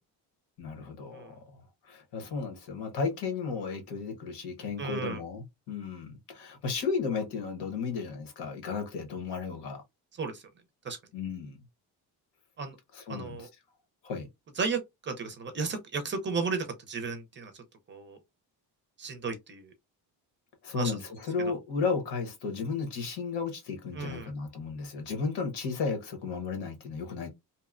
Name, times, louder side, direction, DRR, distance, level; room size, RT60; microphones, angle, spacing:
voice 1, 0.6-9.8 11.1-11.6 12.9-13.5 14.0-14.3 20.6-27.3, left 5 dB, 80° left, 1.1 m, -34 dB
voice 2, 4.8-5.2 10.2-10.4 10.8-11.0 12.6-12.8 13.1-13.5 14.6-17.5 17.9-18.2 19.0-19.7 20.7-21.0 21.4-21.6 23.9-24.3, right 4 dB, 30° right, 0.5 m, -34 dB
2.8 x 2.1 x 2.4 m
cardioid pair, 155°, 40 cm